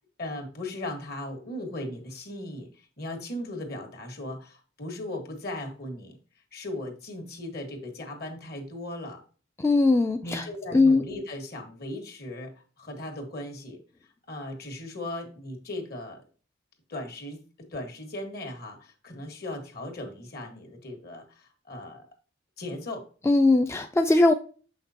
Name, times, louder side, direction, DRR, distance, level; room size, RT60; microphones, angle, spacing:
voice 1, 0.2-6.2 6.5-9.2 10.2-13.8 14.3-16.2 16.9-22.1 22.6-23.1, left 1 dB, 55° left, 1.7 m, -37 dB
voice 2, 9.6-10.5 10.7-11.0 23.3-24.3, left 2 dB, 15° left, 0.3 m, -20 dB
6.9 x 5.8 x 2.8 m
head